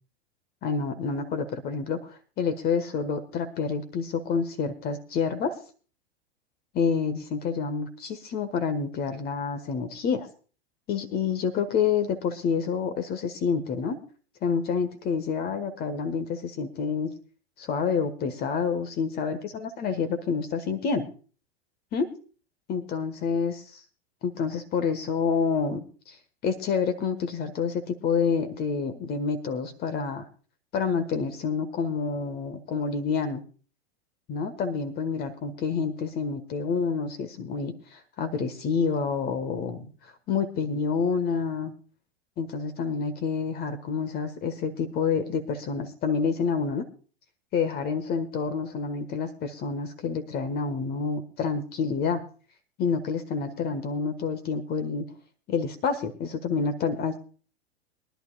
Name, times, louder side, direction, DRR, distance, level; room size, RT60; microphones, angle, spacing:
voice 1, 0.6-5.5 6.7-10.3 10.9-14.0 14.4-17.1 17.6-21.1 21.9-22.1 22.7-23.8 24.2-26.2 26.4-30.2 30.7-33.4 34.3-39.9 40.3-41.7 42.4-46.8 47.5-52.2 52.8-55.1 55.5-57.2, left 5 dB, 30° left, 10 dB, 1.4 m, -28 dB
23.0 x 11.5 x 2.3 m, 0.38 s
figure-of-eight pair, 90°, 33 cm